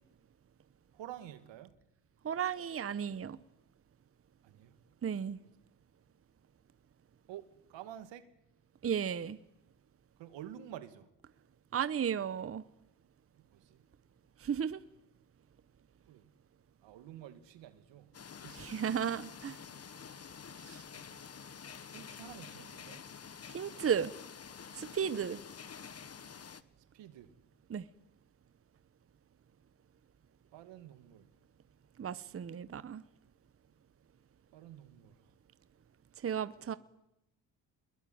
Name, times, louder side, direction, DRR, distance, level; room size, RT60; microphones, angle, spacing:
voice 1, 0.9-1.8 4.4-4.8 7.3-8.2 10.2-11.1 13.4-13.8 16.1-16.3 16.8-18.1 18.4-18.7 20.1-20.3 20.5-21.2 21.9-23.0 26.9-27.3 30.5-31.3 34.5-35.2 36.7-36.8, right 11 dB, 85° right, 2.3 m, -50 dB
voice 2, 2.2-3.4 5.0-5.4 8.8-9.4 11.7-12.6 14.4-14.8 18.6-19.6 23.5-24.1 24.7-25.4 27.7-27.9 32.0-33.0 36.2-36.8, right 8 dB, 30° right, 0.9 m, -34 dB
sound 1, 18.1-26.6, left 6 dB, 35° left, 1.3 m, -49 dB
22.5 x 21.0 x 9.5 m
cardioid pair, 85°, 43 cm